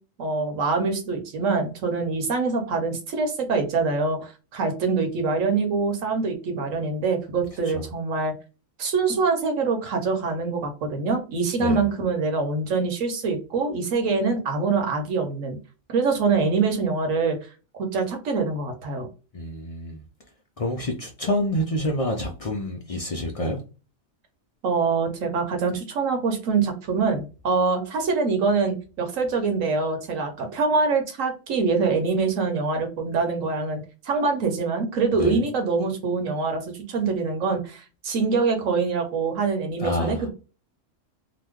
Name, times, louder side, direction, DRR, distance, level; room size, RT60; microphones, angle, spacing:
voice 1, 0.2-8.3 8.8-15.6 15.9-17.4 17.8-19.1 24.6-40.3, right 4 dB, 80° right, 5 dB, 1.2 m, -24 dB
voice 2, 19.3-20.0 20.6-23.6 35.2-35.4 39.8-40.3, left 1 dB, 60° left, 1 dB, 0.3 m, -27 dB
2.9 x 2.1 x 3.5 m, 0.33 s
omnidirectional pair, 1.3 m